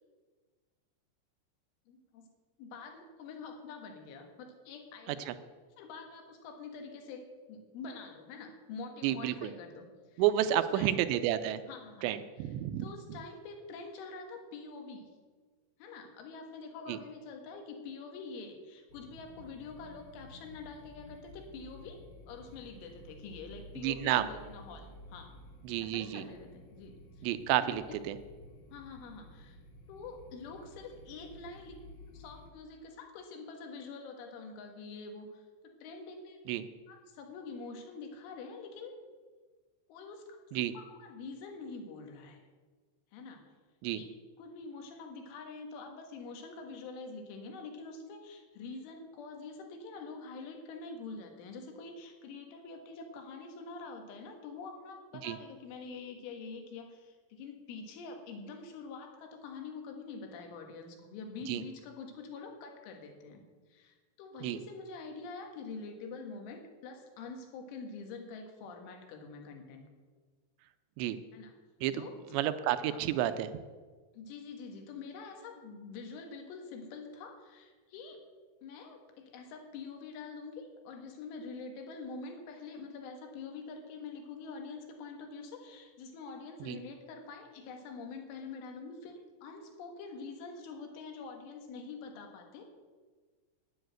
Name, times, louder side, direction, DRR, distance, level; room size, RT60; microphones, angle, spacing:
voice 1, 1.9-2.3 2.6-5.4 5.8-11.2 11.6-15.1 15.8-22.0 22.3-25.3 25.8-28.0 28.7-29.6 29.9-31.8 32.1-36.4 36.9-38.9 39.9-42.4 43.1-43.5 43.9-44.1 44.4-63.4 63.7-69.9 71.3-71.5 71.9-72.2 72.9-73.1 74.2-78.2 78.6-92.6, left 4 dB, 85° left, 4 dB, 4.0 m, -46 dB
voice 2, 9.0-9.5 10.2-11.6 12.0-12.9 16.9-17.0 23.8-24.2 25.7-26.3 27.2-28.2 36.5-36.7 40.5-40.7 43.8-44.0 55.2-55.4 61.5-61.6 64.4-64.6 71.0-71.2 71.8-72.0 72.3-73.5 86.7-86.8, right 12 dB, 80° right, 11 dB, 2.6 m, -30 dB
sound 1, 18.9-32.5, left 1 dB, 60° left, 2.8 m, -53 dB
10.5 x 10.0 x 7.8 m, 1.4 s
omnidirectional pair, 5.5 m